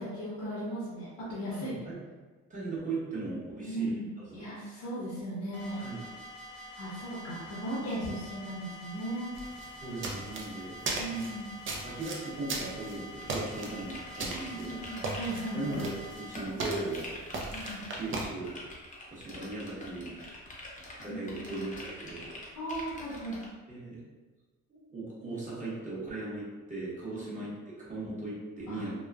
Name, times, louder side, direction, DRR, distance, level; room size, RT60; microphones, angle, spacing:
voice 1, 0.0-1.8 3.6-4.1 4.3-5.8 6.7-9.3 11.0-11.5 14.4-15.8 17.5-17.8 21.1-21.5 22.5-23.4 27.1-27.4 28.7-28.8, right 1 dB, 75° left, -9 dB, 0.9 m, -37 dB
voice 2, 1.5-2.0 2.5-4.0 4.2-4.5 5.8-6.0 9.8-10.8 11.1-11.3 11.8-14.8 15.5-17.1 17.9-18.6 19.1-20.1 21.0-22.3 23.7-24.0 24.7-28.9, right 2 dB, 25° right, -8 dB, 1.1 m, -38 dB
sound 1, 5.5-16.3, left 1 dB, 80° right, 0.9 m, -46 dB
sound 2, 9.3-18.3, right 3 dB, 45° right, 0.5 m, -38 dB
sound 3, 13.2-15.9 16.3-23.5, left 1 dB, 25° left, 0.7 m, -45 dB
3.0 x 2.1 x 2.3 m, 1.3 s
cardioid pair, 90°, 30 cm